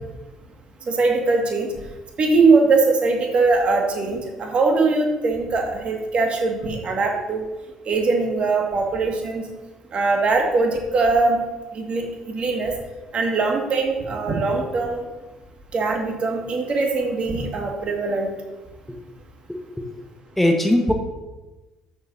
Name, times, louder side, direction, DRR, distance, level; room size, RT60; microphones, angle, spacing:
voice 1, 0.9-1.7 2.2-7.5 7.9-9.4 9.9-11.4 11.7-12.7 13.1-15.0 15.7-18.3, right 3 dB, 45° right, 1 dB, 2.1 m, -21 dB
voice 2, 19.5-19.8 20.4-20.9, left 1 dB, 5° left, 3 dB, 1.2 m, -20 dB
13.0 x 7.2 x 2.8 m, 1.1 s
figure-of-eight pair, 50°, 3 cm